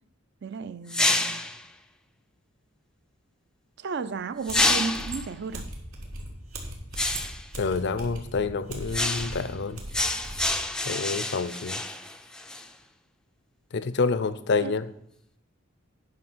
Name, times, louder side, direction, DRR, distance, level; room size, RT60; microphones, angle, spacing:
voice 1, 0.4-1.4 3.8-5.7 14.6-14.7, right 5 dB, 55° right, 0.5 m, -34 dB
sound 1, 0.9-1.6 4.4-5.2 6.9-7.4 8.9-9.5 9.9-12.7, left 2 dB, 5° left, 0.4 m, -27 dB
sound 2, 4.5-10.6, right 1 dB, 90° right, 1.9 m, -39 dB
voice 2, 7.6-9.8 10.9-11.8 13.7-14.9, left 4 dB, 55° left, 0.5 m, -28 dB
9.7 x 5.4 x 6.2 m
head